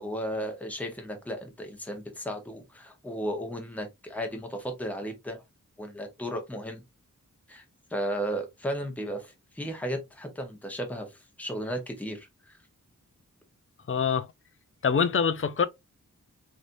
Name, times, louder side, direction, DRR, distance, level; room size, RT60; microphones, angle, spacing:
voice 1, 0.0-5.4 5.8-6.8 7.5-7.6 7.9-12.6, equal, 5° left, 0.9 m, -35 dB
voice 2, 13.9-14.3 14.8-15.7, left 6 dB, 40° left, 0.4 m, -24 dB
3.2 x 2.7 x 2.5 m
wide cardioid pair, 95°, 32 cm